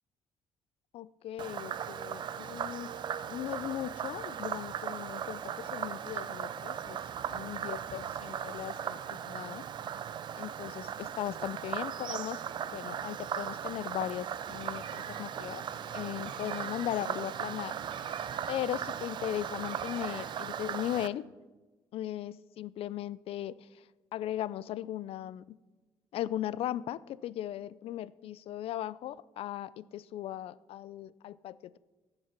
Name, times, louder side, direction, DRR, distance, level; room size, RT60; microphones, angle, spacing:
voice 1, 0.9-2.9 3.2-7.0 7.3-9.6 10.4-12.4 12.7-15.6 15.9-17.8 18.5-21.2 21.9-23.8 24.1-25.6 26.1-31.8, left 12 dB, 75° left, 19 dB, 0.4 m, -38 dB
Frog, 1.4-21.1, right 8 dB, 50° right, 0.5 m, -38 dB
Car, 14.5-15.4 16.1-17.1 17.8-18.8 19.5-20.5, right 7 dB, 65° right, 1.3 m, -47 dB
sound 1, 15.0-20.1, right 1 dB, 30° right, 2.5 m, -59 dB
14.5 x 7.8 x 6.0 m, 1.2 s
cardioid pair, 135°, 10 cm